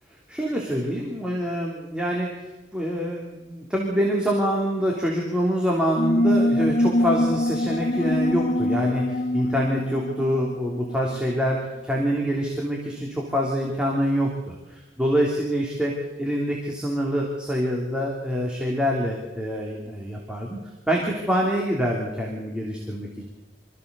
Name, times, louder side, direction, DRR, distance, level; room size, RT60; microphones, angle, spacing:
voice 1, 0.3-2.3 2.7-11.6 11.8-15.9 16.2-20.6 20.9-23.3, equal, 5° right, -2 dB, 3.2 m, -25 dB
sound 1, 6.0-11.2, left 1 dB, 45° left, 0.8 m, -24 dB
25.5 x 15.0 x 7.0 m, 1.0 s
head